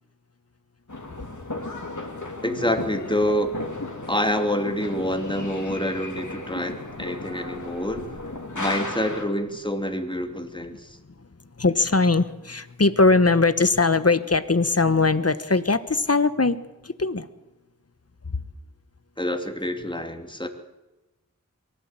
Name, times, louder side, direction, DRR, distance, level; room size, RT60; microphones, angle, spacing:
sound 1, 0.9-9.2, left 2 dB, 65° left, 3.6 m, -35 dB
voice 1, 2.4-3.5 4.1-8.2 8.5-11.0 19.2-20.5, equal, 15° left, 5 dB, 2.8 m, -27 dB
voice 2, 11.6-16.5 17.0-17.3, left 3 dB, 50° left, 13 dB, 1.3 m, -20 dB
23.0 x 16.0 x 8.9 m, 1.1 s
wide cardioid pair, 45°, 32 cm